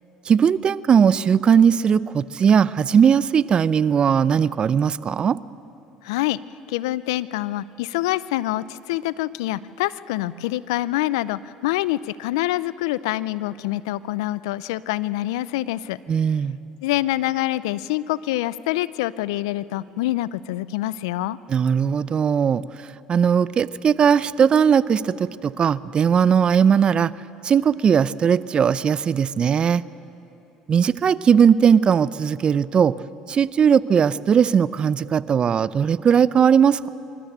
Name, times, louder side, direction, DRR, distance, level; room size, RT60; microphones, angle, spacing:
voice 1, 0.3-5.4 16.1-16.6 21.5-22.6 23.1-27.1 27.4-29.8 30.7-33.0 33.3-36.9, right 7 dB, 40° right, 18 dB, 0.5 m, -18 dB
voice 2, 6.0-6.4 6.7-16.0 16.8-21.4, left 16 dB, 85° left, 19 dB, 0.4 m, -26 dB
25.5 x 13.0 x 8.1 m, 2.9 s
hypercardioid pair, 75°, 2 cm